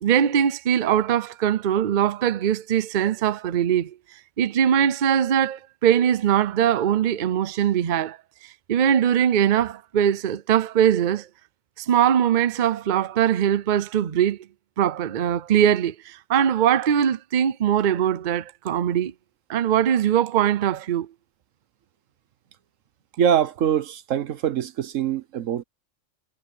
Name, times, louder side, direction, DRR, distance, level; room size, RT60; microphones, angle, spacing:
voice 1, 0.0-4.0 4.4-8.2 8.7-11.3 11.8-14.4 14.8-19.1 19.5-21.1, right 9 dB, 50° right, 0.7 m, -21 dB
voice 2, 23.2-25.6, right 9 dB, 80° right, 1.2 m, -23 dB
omnidirectional pair, 1.3 m